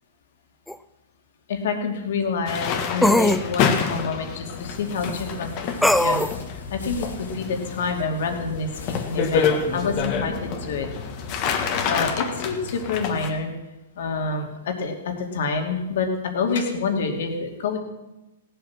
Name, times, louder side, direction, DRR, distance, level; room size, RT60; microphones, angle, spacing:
sound 1, 0.7-0.8 3.0-3.4 5.8-6.3, left 1 dB, ahead, 0.3 m, -19 dB
voice 1, 1.5-5.5 5.8-10.9 11.9-13.5 14.0-17.8, left 4 dB, 65° left, 3 dB, 2.5 m, -27 dB
sound 2, 2.5-13.3, left 6 dB, 40° left, 1.7 m, -28 dB
sound 3, 4.5-12.1, left 3 dB, 85° left, 2.4 m, -41 dB
17.0 x 8.0 x 6.0 m, 1.0 s
hypercardioid pair, 135°, 0 cm